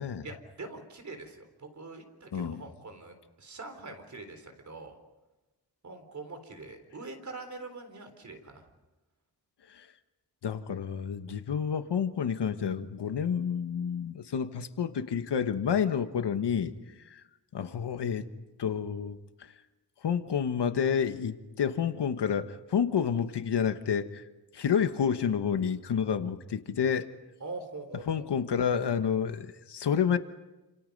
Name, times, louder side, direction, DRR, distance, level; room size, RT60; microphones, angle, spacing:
voice 1, 0.2-4.9 5.8-8.7 27.4-28.2, right 3 dB, 45° right, 7 dB, 3.8 m, -43 dB
voice 2, 2.3-2.6 9.7-9.8 10.4-16.7 17.1-17.2 17.5-18.3 18.6-19.2 20.0-24.2 24.5-27.1 28.1-30.2, left 7 dB, 80° left, 9 dB, 1.4 m, -29 dB
29.0 x 27.5 x 5.4 m, 1.1 s
wide cardioid pair, 155°, 40 cm